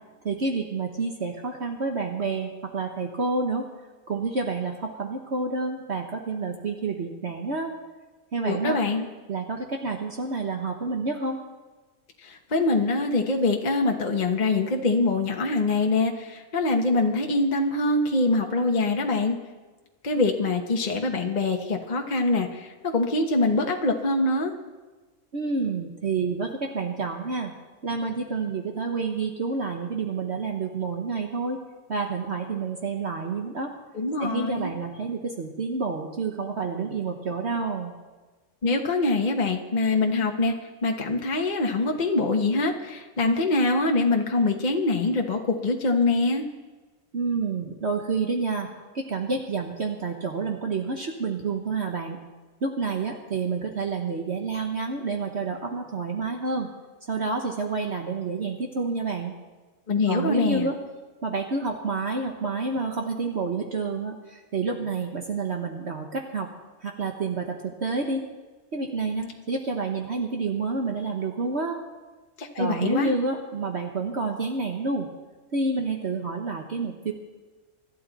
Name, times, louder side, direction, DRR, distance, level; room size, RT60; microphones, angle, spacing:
voice 1, 0.2-3.7 4.1-7.7 8.3-8.8 9.3-11.4 25.3-27.5 27.8-31.6 31.9-33.7 34.2-37.9 47.1-48.7 48.9-52.2 52.6-56.7 57.1-59.3 60.1-60.8 61.2-66.5 66.8-68.2 68.7-71.8 72.6-75.1 75.5-77.1, right 4 dB, 50° right, 2 dB, 1.4 m, -29 dB
voice 2, 8.4-9.1 12.2-19.4 20.0-24.5 33.9-34.7 38.6-46.4 59.9-60.7 72.4-73.1, left 2 dB, 35° left, 2 dB, 1.2 m, -24 dB
26.0 x 12.0 x 4.1 m, 1.3 s
omnidirectional pair, 1.5 m